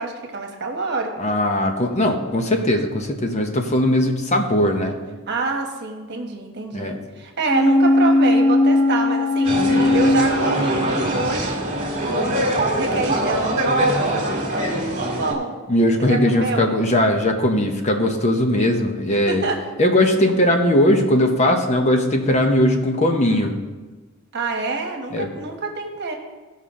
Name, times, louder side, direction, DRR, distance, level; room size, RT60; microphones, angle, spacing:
voice 1, 0.0-1.1 5.3-9.6 9.9-15.5 16.0-16.7 19.1-19.6 24.3-26.2, right 3 dB, 50° right, 2 dB, 1.3 m, -27 dB
voice 2, 1.2-5.0 6.7-7.0 15.7-19.5 19.8-23.5 25.1-25.3, left 1 dB, 30° left, 4 dB, 0.8 m, -19 dB
sound 1, 7.4-11.2 11.6-11.7, left 2 dB, 10° left, 1.0 m, -18 dB
sound 2, 9.4-15.3, right 1 dB, 35° right, 1.9 m, -23 dB
15.5 x 5.6 x 3.7 m, 1.2 s
head